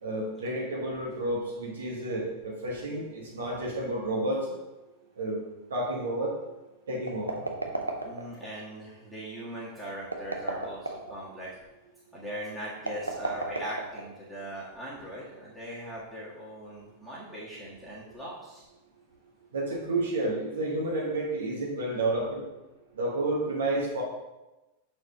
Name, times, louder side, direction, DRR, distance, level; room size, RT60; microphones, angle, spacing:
voice 1, 0.0-4.6 5.2-5.4 5.7-6.3 6.9-7.4 19.5-22.4 23.0-24.0, right 1 dB, 65° right, -3 dB, 1.3 m, -30 dB
sound 1, 7.0-8.5 10.0-11.2 12.8-14.3, right 2 dB, 85° right, 0.8 m, -33 dB
voice 2, 8.0-11.5 12.1-18.6, right 1 dB, 5° right, -8 dB, 1.7 m, -40 dB
6.4 x 4.4 x 5.0 m, 1.0 s
figure-of-eight pair, 90°, 0 cm